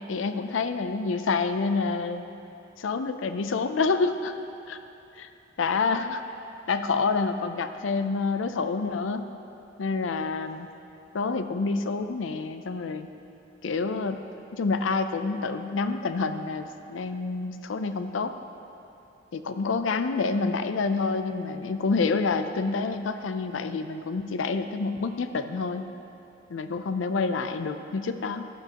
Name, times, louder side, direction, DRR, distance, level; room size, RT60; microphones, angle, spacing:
voice 1, 0.0-2.3 2.8-4.3 4.7-4.8 5.2-5.3 5.6-6.2 6.7-9.3 9.8-10.7 11.1-13.1 13.6-14.2 14.5-18.3 19.3-25.9 26.5-28.5, left 4 dB, 80° left, 9 dB, 0.5 m, -28 dB
14.0 x 9.1 x 2.9 m, 2.9 s
head